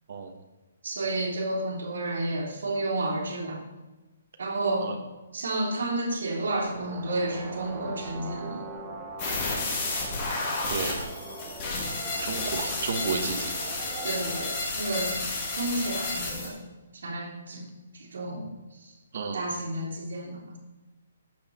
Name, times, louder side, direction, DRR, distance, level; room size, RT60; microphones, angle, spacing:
voice 1, 0.8-3.6 4.4-5.0 5.3-8.7 14.0-15.2 15.5-16.6 17.0-17.7 17.9-18.5 18.8-18.9 19.3-20.4, right 2 dB, 75° right, -4 dB, 3.3 m, -31 dB
sound 1, 6.5-14.5, right 3 dB, 15° right, 0.8 m, -41 dB
sound 2, 9.2-16.5, left 3 dB, 20° left, 2.0 m, -31 dB
voice 2, 10.7-11.0 12.2-13.5 19.1-19.5, right 5 dB, 40° right, 4 dB, 1.2 m, -32 dB
15.0 x 6.2 x 4.2 m, 1.1 s
hypercardioid pair, 180°, 0 cm